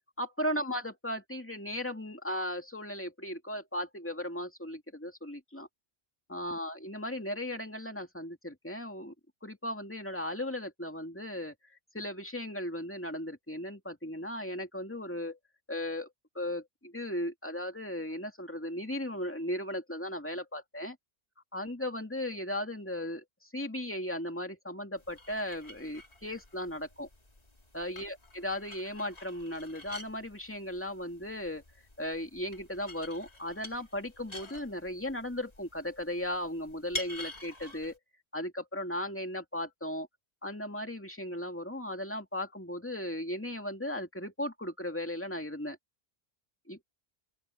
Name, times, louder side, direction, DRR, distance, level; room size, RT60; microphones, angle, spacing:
voice 1, 0.2-5.7 6.3-9.1 9.4-11.5 11.9-15.4 15.7-16.1 16.3-21.0 21.5-27.1 27.7-31.6 32.0-38.0 38.3-40.1 40.4-45.8 46.7-46.8, left 1 dB, 10° left, 2.4 m, -36 dB
sound 1, 25.0-38.0, left 1 dB, 35° left, 2.4 m, -48 dB
open air
omnidirectional pair, 1.2 m